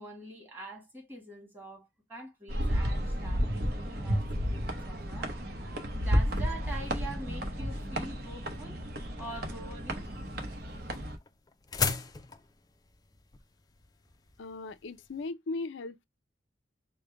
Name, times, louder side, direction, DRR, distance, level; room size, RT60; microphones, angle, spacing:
voice 1, 0.0-5.3 5.9-8.9 9.2-10.2, right 2 dB, 10° right, 1.8 m, -45 dB
sound 1, 2.5-11.2, equal, 55° right, 1.0 m, -32 dB
sound 2, 10.0-15.2, left 5 dB, 20° left, 0.4 m, -37 dB
voice 2, 14.4-16.0, left 3 dB, 75° left, 0.4 m, -38 dB
5.0 x 2.2 x 3.3 m
head